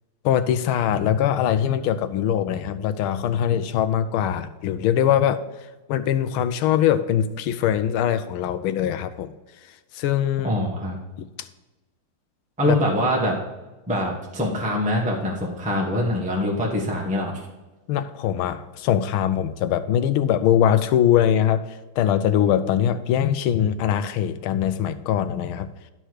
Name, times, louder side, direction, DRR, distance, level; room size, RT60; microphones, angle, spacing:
voice 1, 0.2-5.4 5.9-9.3 9.9-10.5 11.2-11.3 12.6-12.8 17.9-21.6 22.0-25.7, left 10 dB, 80° left, 11 dB, 1.5 m, -22 dB
voice 2, 10.4-11.0 12.6-13.3 13.9-17.4, left 1 dB, 5° right, -2 dB, 1.2 m, -24 dB
11.5 x 4.5 x 4.7 m, 1.1 s
omnidirectional pair, 2.3 m